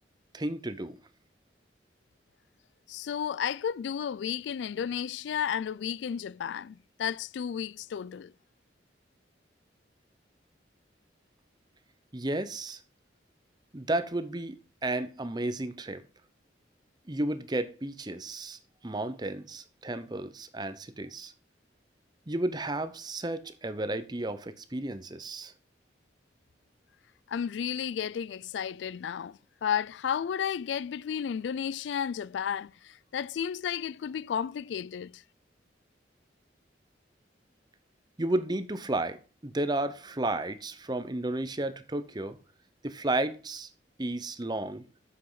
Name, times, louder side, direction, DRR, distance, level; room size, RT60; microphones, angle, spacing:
voice 1, 0.3-1.0 12.1-12.8 13.7-16.0 17.1-21.3 22.3-25.5 38.2-42.4 42.8-43.7 44.0-44.8, right 2 dB, 25° right, 0.8 m, -33 dB
voice 2, 2.9-8.3 27.3-35.2, left 8 dB, 80° left, 0.3 m, -33 dB
8.9 x 7.6 x 3.9 m
head